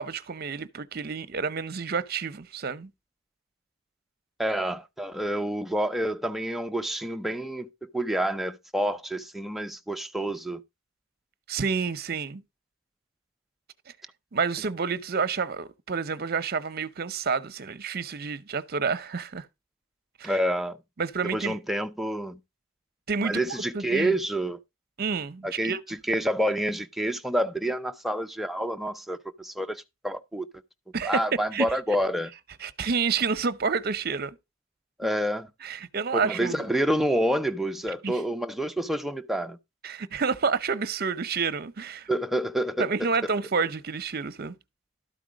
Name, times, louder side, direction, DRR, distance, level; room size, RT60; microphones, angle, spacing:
voice 1, 0.0-2.9 11.5-12.4 14.3-19.5 20.2-20.3 21.0-21.6 23.1-23.4 23.7-24.1 25.0-25.8 30.9-31.3 31.5-31.7 32.6-34.4 35.6-36.7 38.0-38.1 39.8-42.1 42.8-44.5, right 5 dB, 50° right, 0.7 m, -29 dB
voice 2, 4.4-10.6 20.2-20.8 21.3-22.4 23.2-24.6 25.4-30.5 31.0-32.3 35.0-35.5 36.1-39.6 42.1-43.1, right 1 dB, ahead, 0.6 m, -28 dB
12.5 x 4.9 x 4.9 m
head